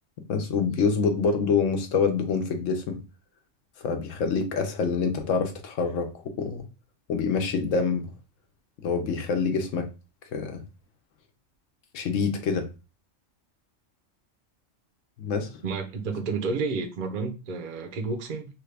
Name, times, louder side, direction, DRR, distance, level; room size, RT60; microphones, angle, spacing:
voice 1, 0.3-3.0 3.8-6.6 7.1-8.1 8.8-9.9 10.3-10.6 11.9-12.7 15.2-15.5, left 5 dB, 80° left, 1.0 m, -26 dB
voice 2, 15.6-18.5, right 4 dB, 50° right, 0.6 m, -30 dB
3.3 x 2.3 x 3.3 m
omnidirectional pair, 1.3 m